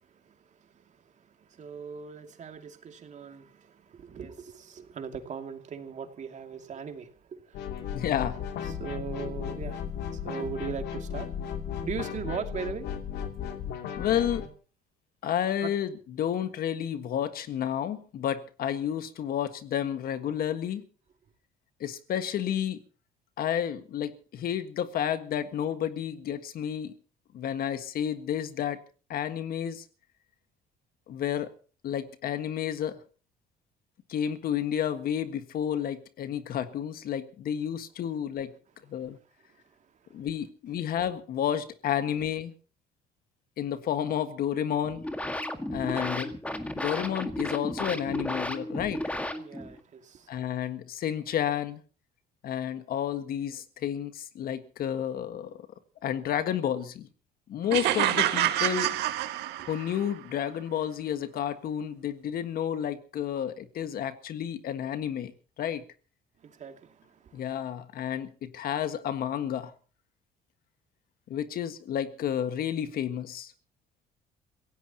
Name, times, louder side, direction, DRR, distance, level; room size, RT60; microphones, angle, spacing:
voice 1, 0.0-7.9 8.6-9.9 10.1-11.3 11.8-12.9 15.6-15.7 39.0-39.1 39.5-39.8 46.7-46.8 49.3-50.5 58.1-58.4 59.3-59.7 66.4-67.5, right 6 dB, 45° right, 2.5 m, -40 dB
sound 1, 7.5-14.5, left 8 dB, 80° left, 2.8 m, -35 dB
voice 2, 7.9-8.4 14.0-14.4 15.2-15.9 16.2-20.8 21.8-22.8 23.4-26.9 27.3-28.8 29.1-29.8 31.1-31.5 31.8-33.0 34.1-38.5 38.9-39.2 40.1-42.5 43.6-45.0 45.7-46.3 46.8-49.0 50.3-51.8 52.4-55.7 56.0-57.1 57.5-58.9 59.7-65.3 65.6-65.8 67.3-69.7 71.3-73.5, left 9 dB, 60° left, 1.6 m, -31 dB
sound 2, 44.8-49.8, left 1 dB, 10° left, 1.8 m, -34 dB
sound 3, 57.7-60.0, right 13 dB, 85° right, 1.7 m, -27 dB
27.5 x 17.0 x 2.9 m
cardioid pair, 110°, 17 cm